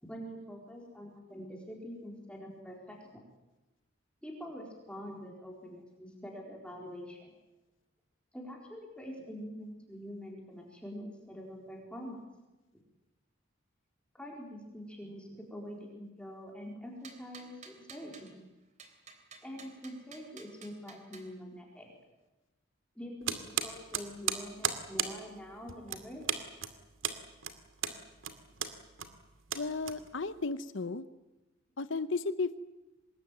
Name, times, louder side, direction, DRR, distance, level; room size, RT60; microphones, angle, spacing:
voice 1, 0.0-3.2 4.2-7.3 8.3-12.2 14.1-18.3 19.4-21.9 23.0-26.2, equal, 5° left, -1 dB, 4.2 m, -45 dB
sound 1, 17.0-18.3 18.8-21.3, right 5 dB, 35° right, 3.3 m, -52 dB
sound 2, 23.2-30.4, right 8 dB, 75° right, 2.4 m, -36 dB
voice 2, 29.5-31.1 31.8-32.6, left 3 dB, 70° left, 13 dB, 0.9 m, -34 dB
25.5 x 20.5 x 9.2 m, 1.0 s
head